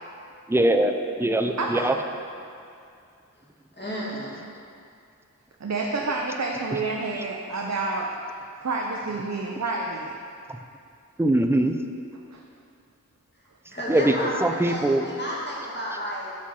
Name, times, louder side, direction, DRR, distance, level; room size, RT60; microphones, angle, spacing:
voice 1, 0.5-0.9 1.2-1.9 11.2-11.7 13.9-15.0, right 1 dB, 10° right, 6 dB, 0.5 m, -21 dB
voice 2, 1.6-1.9 5.6-8.3 8.6-10.2 12.3-12.4, right 3 dB, 55° right, 0 dB, 0.7 m, -29 dB
voice 3, 3.8-4.4 13.7-16.3, equal, 35° left, -6 dB, 2.1 m, -32 dB
6.3 x 5.6 x 6.2 m, 2.4 s
wide cardioid pair, 45°, 32 cm